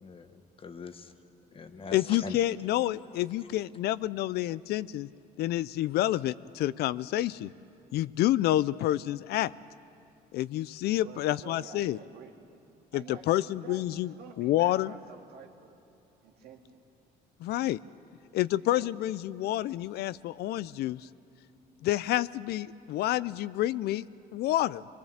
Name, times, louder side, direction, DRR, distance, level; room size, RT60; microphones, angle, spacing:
voice 1, 0.0-1.1 1.5-2.4, left 4 dB, 35° left, 9 dB, 1.2 m, -42 dB
voice 2, 1.9-5.1 5.4-7.5 7.9-9.5 10.3-12.0 12.9-14.9 17.4-17.8 18.3-21.0 21.8-24.0 24.3-24.8, left 14 dB, 70° left, 18 dB, 0.4 m, -28 dB
voice 3, 11.0-12.6 12.9-15.8 16.2-16.8 18.7-18.9, right 6 dB, 70° right, 2 dB, 2.2 m, -50 dB
22.0 x 22.0 x 7.3 m, 2.6 s
cardioid pair, 110°, 17 cm